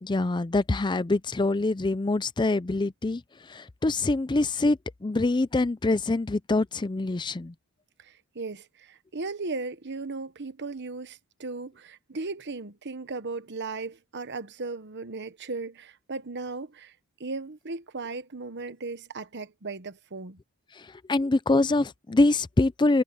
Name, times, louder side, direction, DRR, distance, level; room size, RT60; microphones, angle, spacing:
voice 1, 0.0-7.5 20.7-23.0, left 2 dB, 20° left, 0.4 m, -25 dB
voice 2, 8.0-16.9 17.2-20.4, right 3 dB, 55° right, 1.1 m, -36 dB
head